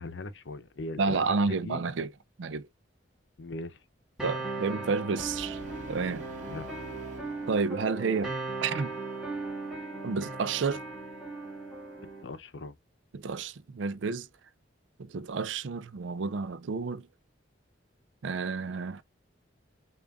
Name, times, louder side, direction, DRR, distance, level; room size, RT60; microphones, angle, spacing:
voice 1, 0.0-1.2 1.5-1.8 3.4-3.8 6.5-6.7 12.2-12.7, left 2 dB, 70° left, 0.7 m, -39 dB
voice 2, 1.0-2.1 2.4-2.7 4.2-5.6 5.9-6.3 7.5-8.3 8.6-8.9 10.0-10.8 13.1-14.3 15.0-17.1 18.2-19.0, right 4 dB, 75° right, 0.4 m, -30 dB
sound 1, 4.2-12.2, right 3 dB, 5° right, 1.4 m, -38 dB
Brass instrument, 5.2-8.3, equal, 40° right, 1.7 m, -44 dB
6.9 x 2.5 x 2.4 m
head